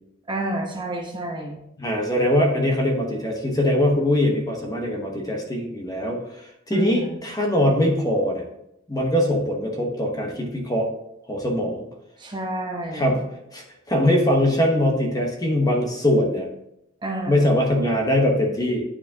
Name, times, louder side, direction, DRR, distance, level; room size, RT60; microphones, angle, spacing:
voice 1, 0.3-1.6 6.7-7.2 12.2-13.2 17.0-17.5, right 1 dB, 25° right, 1 dB, 0.9 m, -29 dB
voice 2, 1.8-8.4 8.9-10.9 11.3-11.9 12.9-13.2 13.5-16.5 17.3-18.8, left 1 dB, 20° left, 1 dB, 1.0 m, -22 dB
9.8 x 4.9 x 2.8 m, 0.82 s
head